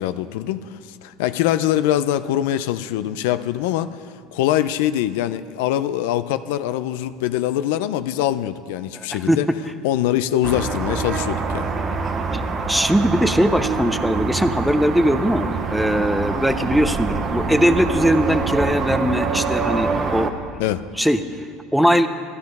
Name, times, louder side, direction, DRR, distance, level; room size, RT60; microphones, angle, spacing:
voice 1, 0.0-3.9 4.3-9.5 9.8-11.7 20.6-20.8, left 12 dB, 85° left, 12 dB, 0.4 m, -23 dB
voice 2, 8.9-9.4 12.3-12.4 12.7-20.3 21.0-22.1, equal, ahead, 10 dB, 0.5 m, -20 dB
sound 1, 10.4-20.3, right 4 dB, 25° right, 0.8 m, -25 dB
13.0 x 12.0 x 5.4 m, 2.2 s
cardioid pair, 150°, 0 cm